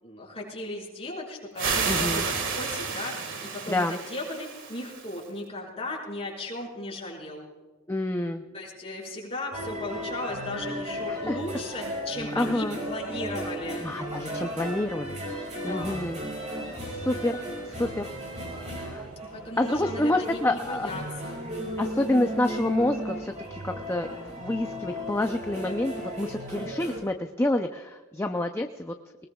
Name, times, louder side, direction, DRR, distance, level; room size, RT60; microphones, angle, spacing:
voice 1, 0.0-3.1 3.4-7.4 8.5-13.8 15.6-16.0 19.3-21.5, left 1 dB, 25° left, -3 dB, 4.9 m, -36 dB
sound 1, 1.6-5.2, right 5 dB, 60° right, 1.9 m, -31 dB
voice 2, 1.9-2.3 3.7-4.0 7.9-8.4 11.1-11.4 12.4-12.8 13.8-16.5 16.9-17.4 17.6-18.1 18.6-19.1 19.6-20.9 21.8-28.9, left 1 dB, 10° left, 5 dB, 0.5 m, -28 dB
sound 2, 9.5-27.0, equal, 30° right, 5.0 m, -35 dB
21.5 x 20.0 x 2.3 m, 1.3 s
head